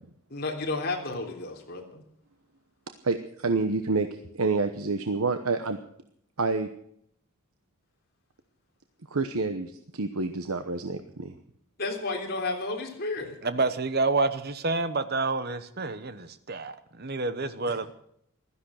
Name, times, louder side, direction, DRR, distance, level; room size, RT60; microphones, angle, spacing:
voice 1, 0.3-2.0 11.8-13.4 17.7-17.8, left 3 dB, 45° left, 1 dB, 3.5 m, -32 dB
voice 2, 3.0-4.1 4.3-5.8 6.4-6.7 9.1-11.3, right 3 dB, 85° right, 8 dB, 1.0 m, -28 dB
voice 3, 13.4-17.9, right 3 dB, 45° right, 12 dB, 1.1 m, -28 dB
16.0 x 13.0 x 6.4 m, 0.70 s
head